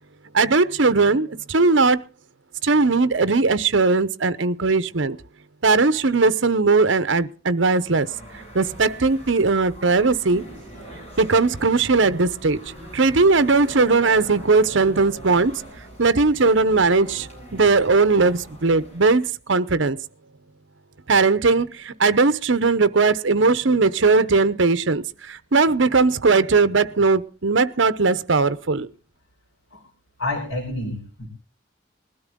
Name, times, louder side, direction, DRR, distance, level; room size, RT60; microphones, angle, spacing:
voice 1, 0.3-2.0 2.6-5.2 5.6-8.1 8.5-10.4 11.2-12.6 12.9-15.5 16.0-20.0 21.1-28.9, right 4 dB, 65° right, 0.8 m, -19 dB
sound 1, 7.7-19.3, right 1 dB, 30° left, 6.8 m, -42 dB
voice 2, 30.2-31.3, left 2 dB, 90° left, 4.4 m, -28 dB
20.5 x 13.0 x 3.8 m
head